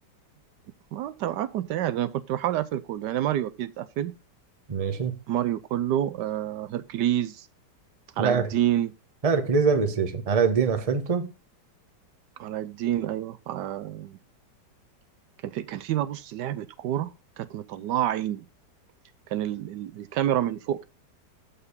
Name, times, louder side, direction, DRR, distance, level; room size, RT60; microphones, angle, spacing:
voice 1, 0.9-4.1 5.3-7.5 8.2-8.9 12.4-14.2 15.4-18.4 19.3-20.8, right 12 dB, 80° right, 1.3 m, -28 dB
voice 2, 4.7-5.1 8.2-8.5 9.2-11.3, right 5 dB, 25° right, 0.9 m, -23 dB
7.2 x 6.7 x 5.3 m
omnidirectional pair, 1.8 m